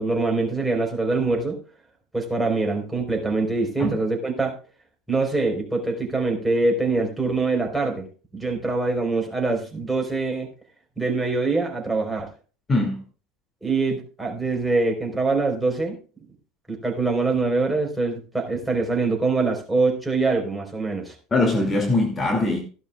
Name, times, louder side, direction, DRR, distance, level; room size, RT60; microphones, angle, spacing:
voice 1, 0.0-1.6 2.1-4.5 5.1-8.1 8.3-10.5 11.0-12.3 13.6-16.0 16.7-21.1, right 3 dB, 5° right, 4.3 m, -24 dB
voice 2, 21.3-22.6, left 2 dB, 25° left, 2.5 m, -21 dB
15.5 x 12.0 x 2.4 m
hypercardioid pair, 80°, 0 cm